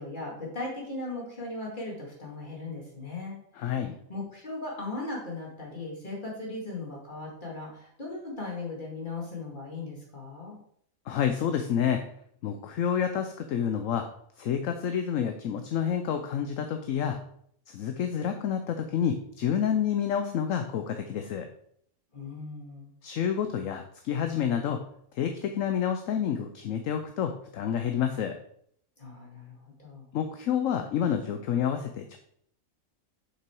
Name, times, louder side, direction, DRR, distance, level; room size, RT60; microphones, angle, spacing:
voice 1, 0.0-3.7 4.1-10.6 22.1-22.9 29.0-30.1, left 2 dB, 30° left, -2 dB, 2.4 m, -38 dB
voice 2, 3.6-4.0 11.1-12.1 12.4-14.1 14.4-17.2 17.7-21.5 23.0-24.8 25.1-28.4 30.1-32.2, left 8 dB, 65° left, 6 dB, 1.0 m, -29 dB
6.8 x 5.9 x 4.6 m, 0.67 s
omnidirectional pair, 1.6 m